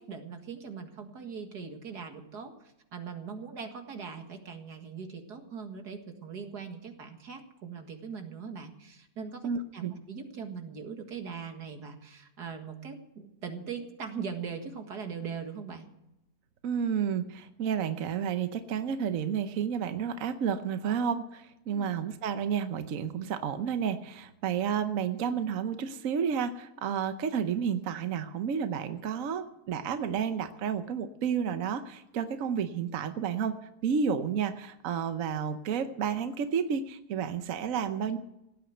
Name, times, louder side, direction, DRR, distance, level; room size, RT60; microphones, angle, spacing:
voice 1, 0.0-2.5 2.9-15.9 21.7-21.9, right 6 dB, 85° right, 5 dB, 2.4 m, -40 dB
voice 2, 9.4-9.9 16.6-33.6 33.8-38.2, right 7 dB, 65° right, 9 dB, 1.2 m, -31 dB
17.0 x 9.3 x 7.9 m, 0.87 s
omnidirectional pair, 1.7 m